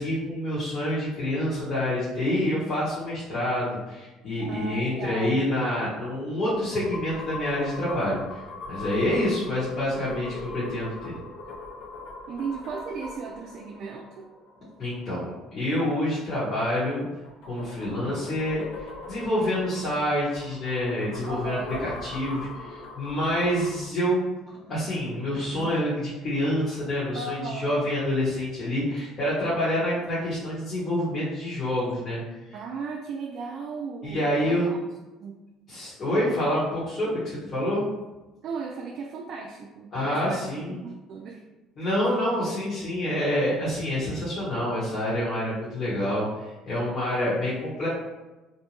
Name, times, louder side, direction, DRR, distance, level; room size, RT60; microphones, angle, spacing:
voice 1, 0.0-8.4 8.7-11.1 14.8-17.1 17.5-24.2 24.6-32.2 32.5-32.6 34.0-34.6 35.7-37.9 39.9-40.8 41.8-47.9, left 1 dB, 45° left, -10 dB, 1.1 m, -27 dB
sound 1, 4.4-15.0 17.0-23.9, left 3 dB, 80° left, 0.5 m, -41 dB
voice 2, 4.5-5.5 9.9-10.5 12.3-14.3 21.3-21.9 27.1-27.8 32.5-34.8 35.2-35.4 38.4-40.4 40.7-41.4, right 4 dB, 60° right, 0 dB, 0.3 m, -36 dB
2.6 x 2.2 x 2.9 m, 1.1 s
cardioid pair, 100°, 0 cm